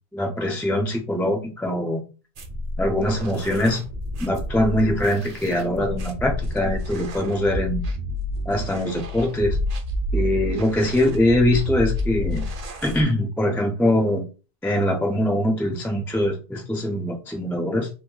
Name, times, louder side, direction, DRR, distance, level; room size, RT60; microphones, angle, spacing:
voice 1, 0.1-2.0 2.8-3.8 4.2-7.9 8.5-9.6 10.1-12.4 12.8-14.2 14.6-17.9, left 1 dB, 5° left, 2 dB, 0.3 m, -23 dB
sound 1, 2.4-13.0, left 1 dB, 50° right, 0.5 m, -29 dB
2.9 x 2.1 x 3.7 m, 0.34 s
omnidirectional pair, 1.0 m